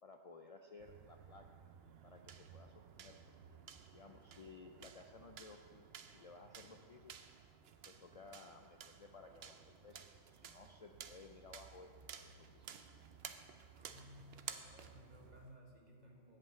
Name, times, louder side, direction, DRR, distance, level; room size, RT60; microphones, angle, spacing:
voice 1, 0.0-1.5 2.0-3.6 3.9-7.2 7.9-12.7, left 3 dB, 70° left, 4 dB, 0.3 m, -58 dB
sound 1, 0.8-15.6, right 7 dB, 60° right, 0.8 m, -55 dB
voice 2, 13.7-16.4, equal, 35° right, 0 dB, 1.5 m, -59 dB
10.5 x 5.6 x 8.3 m, 2.2 s
omnidirectional pair, 1.3 m